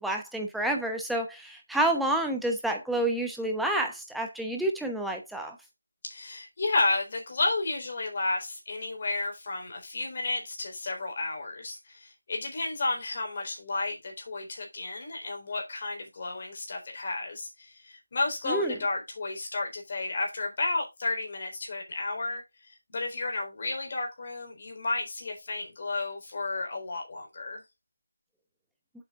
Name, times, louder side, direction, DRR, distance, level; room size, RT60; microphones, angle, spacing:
voice 1, 0.0-5.6 18.5-18.8, right 1 dB, ahead, 0.9 m, -29 dB
voice 2, 6.0-22.4 22.9-27.6, left 3 dB, 30° left, 3.9 m, -32 dB
8.1 x 8.0 x 3.7 m
figure-of-eight pair, 175°, 0 cm